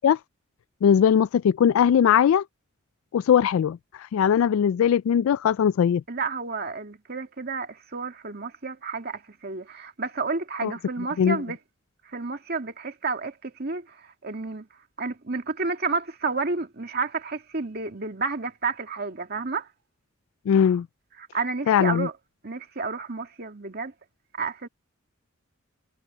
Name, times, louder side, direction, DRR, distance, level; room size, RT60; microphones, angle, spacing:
voice 1, 0.8-2.4 3.1-6.0 10.6-10.7 11.2-11.4 20.5-20.9 21.7-22.1, left 8 dB, 90° left, 0.3 m, -20 dB
voice 2, 6.1-11.6 12.1-14.7 15.0-19.7 21.2-22.1 22.4-23.9 24.4-24.7, right 4 dB, 50° right, 2.1 m, -31 dB
head